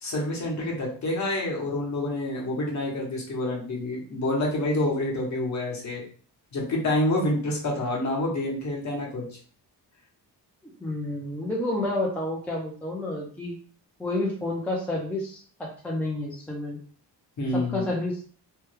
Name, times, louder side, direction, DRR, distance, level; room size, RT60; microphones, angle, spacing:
voice 1, 0.0-6.0 6.5-9.2 17.4-17.9, left 1 dB, 40° left, -2 dB, 1.0 m, -27 dB
voice 2, 10.8-13.6 14.0-16.8 17.5-18.2, left 2 dB, 5° left, -2 dB, 0.4 m, -30 dB
3.2 x 2.2 x 3.2 m, 0.43 s
wide cardioid pair, 180°, 41 cm